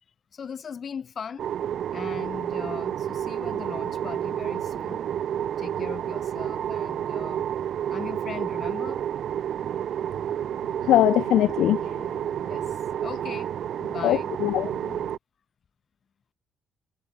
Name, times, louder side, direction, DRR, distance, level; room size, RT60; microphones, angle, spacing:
voice 1, 0.3-1.5 1.9-5.0 5.6-7.5 7.9-9.0 12.4-13.6 13.9-14.3, left 7 dB, 50° left, 4.8 m, -39 dB
sound 1, 1.4-15.2, right 10 dB, 65° right, 1.5 m, -30 dB
voice 2, 10.8-12.1 14.0-15.0, left 14 dB, 85° left, 0.5 m, -22 dB
cardioid pair, 90°, 0 cm